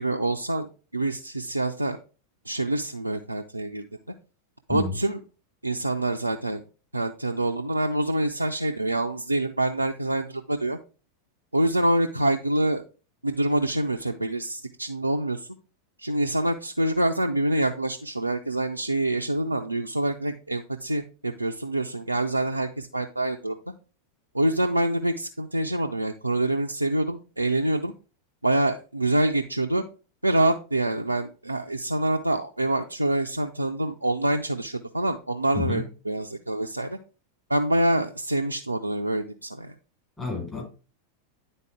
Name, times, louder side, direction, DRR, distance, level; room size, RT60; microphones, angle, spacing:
voice 1, 0.0-2.0 2.5-3.8 4.7-5.2 5.6-6.6 6.9-10.8 11.5-12.8 13.2-15.5 16.0-23.6 24.3-27.9 28.4-29.8 30.2-37.0 37.5-39.7, right 1 dB, 85° right, 2 dB, 0.4 m, -26 dB
voice 2, 40.2-40.6, left 4 dB, 15° left, -2 dB, 4.3 m, -29 dB
10.0 x 4.1 x 3.3 m, 0.34 s
figure-of-eight pair, 90°, 0 cm